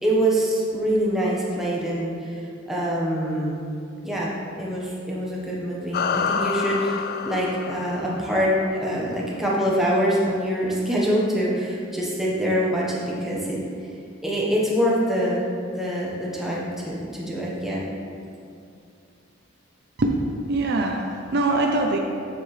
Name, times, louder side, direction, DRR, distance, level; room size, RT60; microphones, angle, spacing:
voice 1, 0.0-2.4 2.7-3.5 4.0-13.6 14.2-15.4 15.8-17.8, equal, ahead, -6 dB, 1.2 m, -24 dB
sound 1, 5.9-8.7, left 6 dB, 45° left, 0.3 m, -28 dB
voice 2, 20.0-22.0, right 2 dB, 50° right, 1 dB, 0.5 m, -23 dB
7.5 x 7.4 x 3.3 m, 2.4 s
head